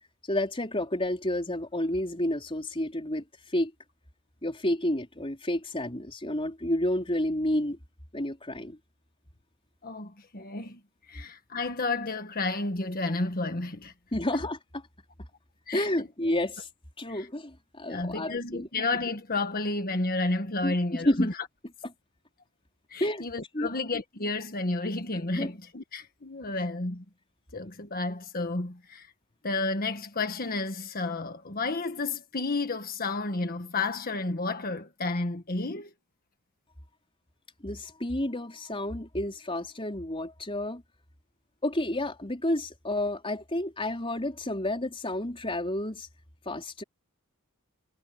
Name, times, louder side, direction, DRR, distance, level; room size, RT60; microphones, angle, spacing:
voice 1, 0.3-3.3 3.5-3.7 4.4-7.8 8.1-8.8 14.1-14.8 15.7-16.7 17.0-18.7 20.6-21.3 23.0-23.3 23.5-23.7 25.3-25.5 37.6-40.8 41.6-46.1 46.4-46.8, left 1 dB, 25° left, 4.6 m, -30 dB
voice 2, 9.8-10.8 11.1-13.9 15.7-15.9 17.1-17.3 17.9-21.3 22.9-27.0 27.5-29.1 29.4-35.9, left 3 dB, 40° left, 1.6 m, -31 dB
head